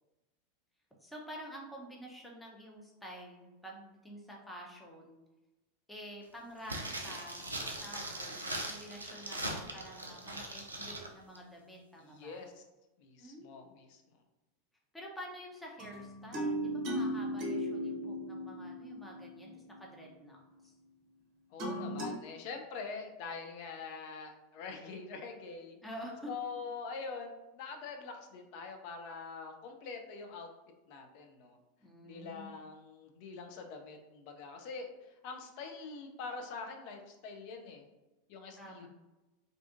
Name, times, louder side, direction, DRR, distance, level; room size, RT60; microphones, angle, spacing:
voice 1, 1.0-5.2 5.9-7.5 7.8-12.4 13.2-14.0 14.9-20.4 20.6-20.7 25.8-26.3 31.8-32.5 38.6-38.9, equal, 5° left, -1 dB, 0.6 m, -49 dB
sound 1, 6.6-11.1 11.4-11.5, right 1 dB, 80° right, 0.3 m, -40 dB
voice 2, 12.0-12.6 13.0-14.0 21.5-25.8 26.3-30.5 30.9-31.6 32.0-37.9 38.3-38.9, left 4 dB, 50° left, 4 dB, 0.4 m, -44 dB
sound 2, 15.8-19.8 21.6-22.1, equal, 40° right, 0.7 m, -36 dB
2.5 x 2.4 x 2.4 m, 1.0 s
figure-of-eight pair, 85°, 0 cm